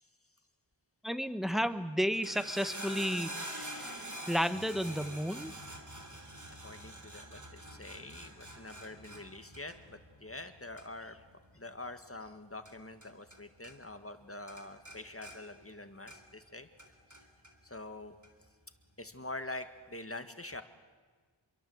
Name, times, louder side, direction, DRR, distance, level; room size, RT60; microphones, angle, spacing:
voice 1, 1.0-5.5, equal, ahead, 11 dB, 1.3 m, -33 dB
sound 1, 2.0-13.4 13.6-14.2 14.5-16.4 16.8-17.5 18.2-18.3, right 1 dB, 40° right, 3.6 m, -46 dB
voice 2, 6.5-11.2 11.5-16.7 17.6-18.1 19.0-20.6, left 2 dB, 30° left, 8 dB, 1.8 m, -45 dB
28.0 x 23.0 x 8.0 m, 1.5 s
wide cardioid pair, 60°, 47 cm